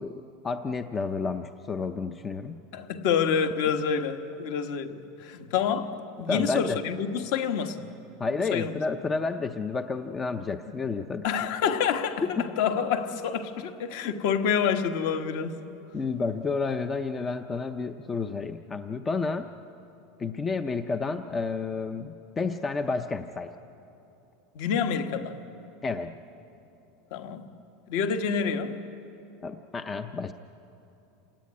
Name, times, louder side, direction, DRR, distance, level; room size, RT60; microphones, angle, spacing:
voice 1, 0.0-2.6 6.2-6.8 8.2-11.2 12.2-12.5 15.9-19.5 20.2-23.5 25.8-26.2 29.4-30.3, left 4 dB, 15° left, 0.5 m, -30 dB
voice 2, 2.7-7.9 8.5-8.7 11.2-15.6 24.5-25.4 27.1-27.5 27.9-28.8, left 7 dB, 55° left, 1.4 m, -28 dB
27.5 x 17.5 x 9.6 m
supercardioid pair, 180°, 0 cm